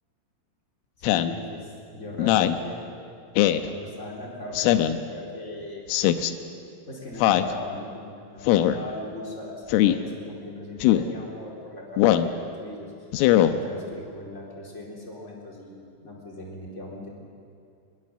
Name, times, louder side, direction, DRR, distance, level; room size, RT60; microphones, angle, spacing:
Speech synthesizer, 1.0-1.3 2.2-2.6 3.4-3.7 4.5-5.0 5.9-6.3 7.2-7.5 8.5-8.8 9.7-10.0 10.8-11.1 12.0-12.3 13.1-13.5, left 13 dB, 90° left, 3.6 m, -20 dB
voice 1, 1.1-2.8 3.6-5.8 6.8-12.3 12.6-13.1 13.4-17.1, left 2 dB, 15° left, -2 dB, 4.1 m, -39 dB
24.5 x 22.0 x 7.9 m, 2.4 s
omnidirectional pair, 5.8 m